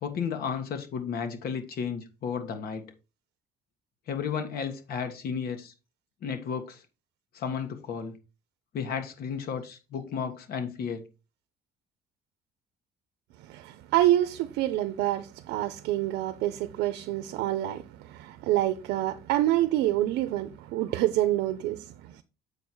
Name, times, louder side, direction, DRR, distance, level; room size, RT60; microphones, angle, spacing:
voice 1, 0.0-2.9 4.1-5.7 6.2-6.8 7.3-8.2 8.7-11.1, left 6 dB, 65° left, 1.6 m, -33 dB
voice 2, 13.5-21.8, right 14 dB, 90° right, 0.7 m, -27 dB
7.7 x 4.9 x 4.4 m
cardioid pair, 110°, 17 cm